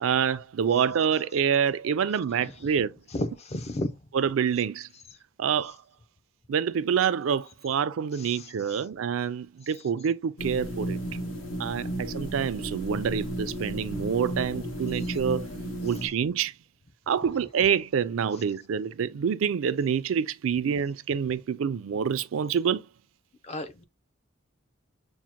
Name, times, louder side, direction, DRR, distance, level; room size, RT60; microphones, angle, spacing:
voice 1, 0.0-2.9 4.1-4.9 5.4-5.8 6.5-11.0 11.6-15.5 15.8-16.5 17.1-22.8, right 7 dB, 75° right, 0.4 m, -27 dB
voice 2, 3.1-3.9 8.1-8.8 23.4-23.8, left 1 dB, 30° left, 0.5 m, -33 dB
sound 1, 10.4-16.1, right 1 dB, 75° left, 1.3 m, -34 dB
6.2 x 2.1 x 2.8 m
head